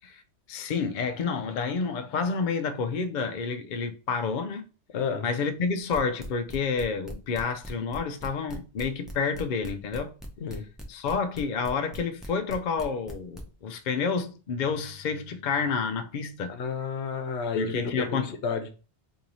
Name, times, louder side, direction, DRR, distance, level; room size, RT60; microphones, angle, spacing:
voice 1, 0.5-4.6 5.2-10.1 10.9-16.6 17.6-18.3, left 5 dB, 55° left, 0.5 m, -29 dB
voice 2, 4.9-5.2 10.4-10.6 16.5-18.7, left 5 dB, 75° left, 1.0 m, -31 dB
sound 1, 5.9-13.4, equal, ahead, 0.5 m, -40 dB
3.1 x 2.7 x 3.8 m
omnidirectional pair, 1.2 m